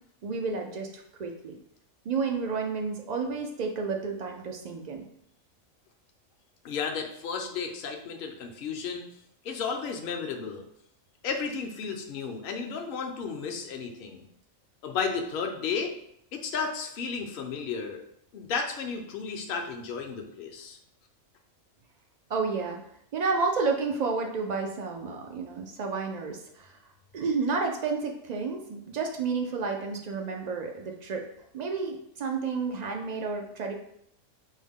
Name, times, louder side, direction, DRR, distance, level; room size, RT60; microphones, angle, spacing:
voice 1, 0.2-1.6 2.1-5.0 22.3-22.8 23.1-26.7 27.1-31.2 31.5-33.7, right 4 dB, 80° right, 2 dB, 0.3 m, -31 dB
voice 2, 6.6-9.1 9.4-10.6 11.2-14.3 14.8-15.9 16.3-18.0 18.3-20.8, left 5 dB, 55° left, 3 dB, 0.7 m, -33 dB
6.2 x 2.1 x 3.5 m, 0.74 s
omnidirectional pair, 1.3 m